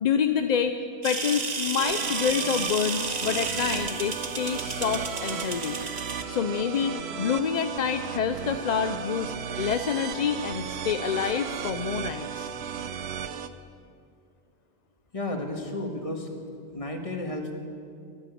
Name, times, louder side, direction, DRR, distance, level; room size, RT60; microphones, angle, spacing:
voice 1, 0.0-5.8 6.1-12.5, left 7 dB, 50° left, 8 dB, 0.6 m, -27 dB
sound 1, 1.0-6.2, right 4 dB, 40° right, 1.1 m, -32 dB
sound 2, 1.8-13.5, right 7 dB, 75° right, 1.0 m, -35 dB
voice 2, 15.1-16.3 16.7-17.5, left 2 dB, 30° left, 3 dB, 1.7 m, -32 dB
13.5 x 10.5 x 9.3 m, 2.4 s
omnidirectional pair, 1.1 m